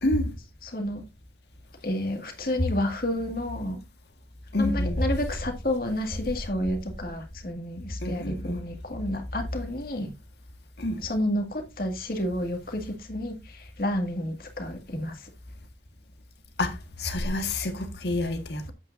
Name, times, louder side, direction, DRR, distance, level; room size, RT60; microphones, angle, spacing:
voice 1, 0.6-1.0 1.8-3.8 4.6-10.1 11.0-15.3, left 1 dB, 55° left, 2.1 m, -30 dB
voice 2, 4.5-5.0 8.0-8.6 10.8-11.0 16.6-18.7, left 2 dB, 75° left, 1.6 m, -28 dB
8.9 x 8.5 x 2.6 m
head